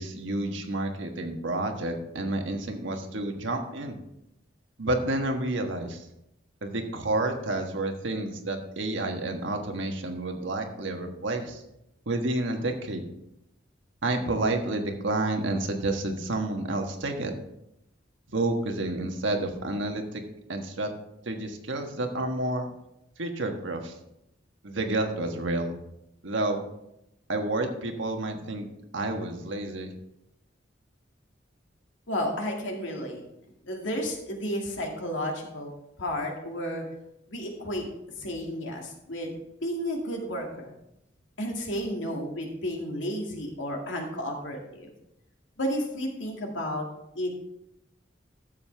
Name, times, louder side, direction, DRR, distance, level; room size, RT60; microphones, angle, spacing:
voice 1, 0.0-4.0 4.8-6.1 6.6-11.6 12.1-13.0 14.0-17.3 18.3-20.2 20.5-20.9 21.3-22.7 23.2-23.9 24.6-25.7 26.2-26.6 27.3-28.7 28.9-29.9, right 2 dB, 80° right, 4 dB, 1.4 m, -30 dB
voice 2, 32.1-33.2 33.6-35.7 36.0-36.8 37.3-37.9 38.2-39.3 39.6-40.7 41.4-44.9 45.6-46.9 47.1-47.3, equal, 85° left, 1 dB, 2.2 m, -32 dB
12.0 x 7.4 x 3.4 m, 0.83 s
head